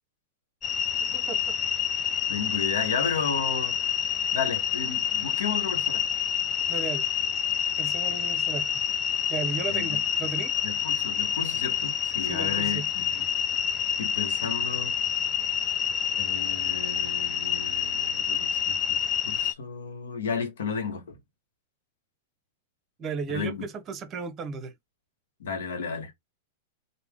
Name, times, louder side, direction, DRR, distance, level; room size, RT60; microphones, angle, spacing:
sound 1, 0.6-19.5, left 9 dB, 25° left, 0.3 m, -28 dB
voice 1, 1.0-1.6 6.7-7.1 7.8-8.8 9.3-10.5 12.3-12.8 23.0-24.7, right 5 dB, 30° right, 0.8 m, -35 dB
voice 2, 2.3-3.9 4.3-6.1 9.7-10.0 10.6-13.2 14.0-14.9 16.2-19.0 19.3-21.1 23.3-23.6 25.4-26.1, left 5 dB, 80° left, 1.0 m, -33 dB
3.5 x 2.1 x 3.5 m
hypercardioid pair, 125°, 0 cm